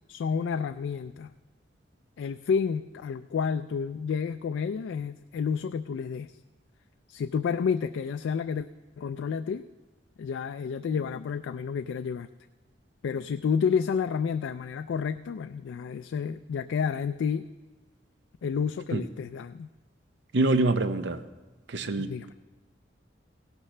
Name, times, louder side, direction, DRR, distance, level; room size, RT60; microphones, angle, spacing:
voice 1, 0.1-1.3 2.2-6.3 7.1-8.7 9.0-9.7 10.2-12.3 13.0-17.5 18.4-19.7 22.0-22.3, left 6 dB, 90° left, 9 dB, 0.3 m, -30 dB
voice 2, 20.3-21.2 21.7-22.1, right 2 dB, 70° right, 11 dB, 0.6 m, -25 dB
17.0 x 12.0 x 3.3 m, 1.2 s
head